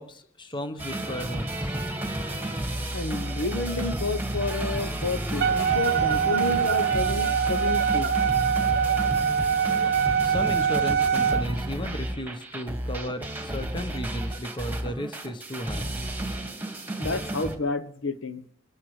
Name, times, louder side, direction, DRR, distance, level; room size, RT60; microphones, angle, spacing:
voice 1, 0.0-1.8 10.2-15.9, equal, 20° left, 8 dB, 1.1 m, -34 dB
sound 1, 0.8-17.6, right 1 dB, 10° right, 1.8 m, -32 dB
voice 2, 2.9-8.1 17.0-18.4, left 3 dB, 60° left, 9 dB, 1.0 m, -30 dB
Wind instrument woodwind instrument, 5.4-11.5, right 7 dB, 45° right, 0.7 m, -24 dB
27.0 x 14.0 x 3.3 m, 0.64 s
head